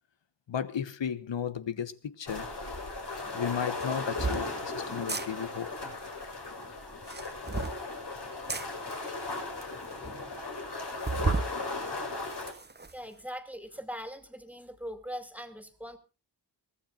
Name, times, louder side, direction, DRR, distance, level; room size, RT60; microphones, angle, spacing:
voice 1, 0.5-2.5 3.3-6.0, left 8 dB, 90° left, 1.3 m, -34 dB
sound 1, 2.3-12.5, left 3 dB, 65° left, 5.2 m, -37 dB
sound 2, 2.7-2.8 3.7-4.4 5.0-5.3 6.9-7.8 8.5-8.7 9.3-9.4 9.6-9.7 10.0-10.1 11.0-11.5 12.0-12.9, right 4 dB, 25° right, 0.9 m, -32 dB
voice 2, 12.9-16.0, equal, 5° right, 2.6 m, -41 dB
24.0 x 16.5 x 2.6 m
wide cardioid pair, 100°, 43 cm